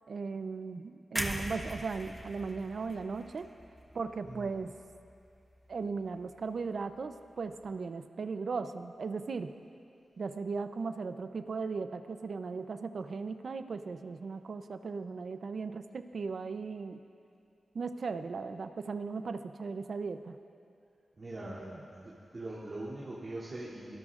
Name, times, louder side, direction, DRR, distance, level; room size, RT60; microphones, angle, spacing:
voice 1, 0.1-3.5 3.9-4.7 5.7-9.5 10.2-17.0 17.7-20.4 21.6-21.9, right 4 dB, 65° right, 9 dB, 0.7 m, -37 dB
sound 1, 1.2-5.2 5.5-5.7, equal, 5° right, 1.2 m, -40 dB
voice 2, 21.2-21.6 21.9-24.0, right 2 dB, 45° right, -9 dB, 2.9 m, -42 dB
25.0 x 18.5 x 2.5 m, 2.6 s
cardioid pair, 70°, 0 cm